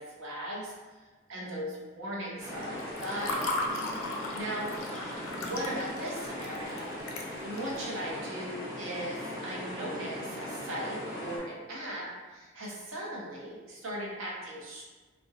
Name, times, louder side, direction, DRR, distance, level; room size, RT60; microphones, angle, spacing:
voice 1, 0.0-3.5 4.3-6.9 7.4-14.8, right 1 dB, 85° right, -4 dB, 0.7 m, -38 dB
sound 1, 2.4-11.4, left 1 dB, 20° right, 0.5 m, -39 dB
Water / Fill (with liquid), 2.6-7.8, left 2 dB, 85° left, 0.4 m, -37 dB
2.4 x 2.1 x 2.7 m, 1.3 s
head